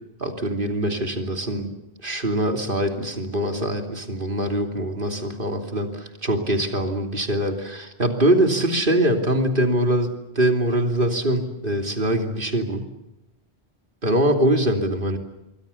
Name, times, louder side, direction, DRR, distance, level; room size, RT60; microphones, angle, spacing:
voice 1, 0.2-1.7 2.0-12.8 14.0-15.2, right 1 dB, 55° right, 5 dB, 3.2 m, -23 dB
27.0 x 23.0 x 7.1 m, 0.93 s
omnidirectional pair, 1.1 m